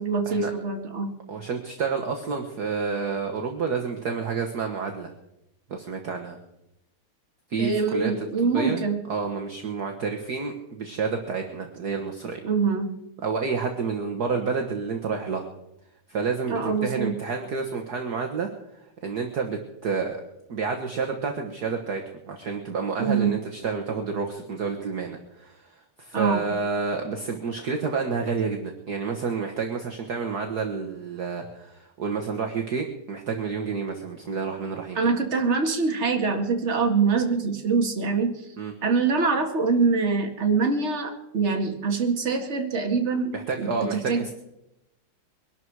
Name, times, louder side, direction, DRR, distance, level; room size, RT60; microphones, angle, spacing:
voice 1, 0.0-1.1 7.6-9.0 12.4-13.0 16.5-17.1 23.0-23.3 26.1-26.4 35.0-38.3 38.8-43.3 43.6-44.2, right 4 dB, 30° right, 3 dB, 2.0 m, -24 dB
voice 2, 1.3-5.1 5.7-6.4 7.5-8.8 9.1-12.4 13.2-15.5 16.1-18.5 19.0-20.2 20.5-35.0 38.6-38.7 43.3-44.3, right 5 dB, 50° right, 3 dB, 1.7 m, -29 dB
22.0 x 12.0 x 4.7 m, 0.88 s
omnidirectional pair, 2.4 m